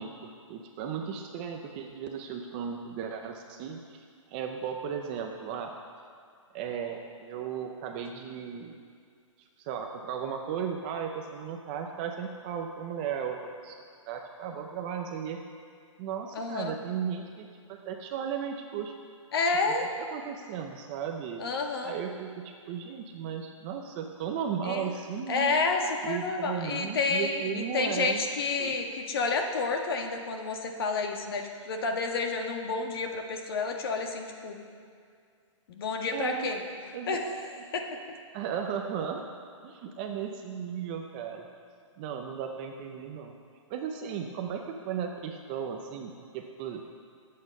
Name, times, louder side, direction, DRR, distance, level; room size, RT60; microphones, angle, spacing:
voice 1, 0.0-5.8 6.5-8.8 9.4-13.8 14.1-15.4 16.0-18.9 20.0-21.4 21.8-25.5 26.0-28.2 28.6-28.7 36.1-36.5 36.9-37.4 38.3-39.2 39.6-41.5 42.0-43.3 43.7-46.9, right 7 dB, 20° right, 3 dB, 0.6 m, -35 dB
voice 2, 16.3-16.7 19.3-19.9 21.4-21.9 24.7-24.9 25.3-34.6 35.7-36.6 37.1-37.2 37.7-37.9, left 4 dB, 45° left, 3 dB, 1.7 m, -30 dB
20.0 x 8.5 x 5.4 m, 2.2 s
hypercardioid pair, 170°, 17 cm